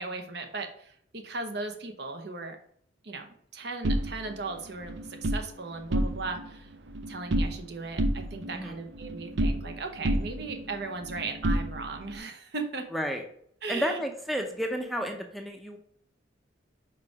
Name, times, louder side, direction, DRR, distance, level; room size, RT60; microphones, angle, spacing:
voice 1, 0.0-2.6 3.0-6.7 7.1-12.9 13.6-14.0, right 3 dB, 60° right, 5 dB, 0.9 m, -37 dB
sound 1, 3.8-5.4 5.8-6.5 6.7-7.7 8.0-9.8 10.0-12.1, right 1 dB, 75° right, 0.6 m, -30 dB
voice 2, 12.9-13.2 13.7-15.8, equal, ahead, 3 dB, 0.5 m, -31 dB
4.8 x 4.8 x 4.8 m, 0.66 s
head